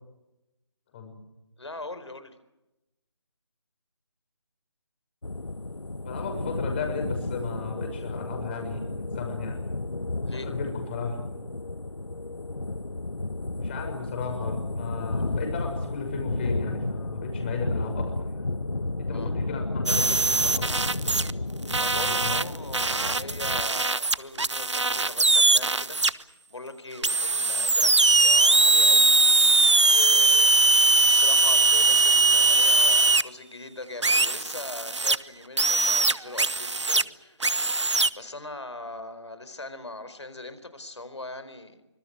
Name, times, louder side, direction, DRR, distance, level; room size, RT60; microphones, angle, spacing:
voice 1, 1.6-2.3 10.2-10.5 19.1-19.3 21.7-29.5 29.9-30.5 31.0-37.4 38.1-41.8, left 2 dB, 70° left, 12 dB, 4.4 m, -41 dB
sound 1, 5.2-23.6, left 2 dB, 85° left, 1.4 m, -32 dB
voice 2, 6.0-9.6 10.3-11.2 13.6-18.5 19.0-21.0 21.9-22.4, left 4 dB, 20° left, 3 dB, 6.4 m, -35 dB
sound 2, 19.9-21.3 21.7-26.1 27.0-33.2 34.0-35.2 35.6-37.0 37.4-38.1, right 3 dB, 75° right, 1.2 m, -21 dB
25.0 x 24.0 x 7.7 m, 0.94 s
figure-of-eight pair, 160°, 15 cm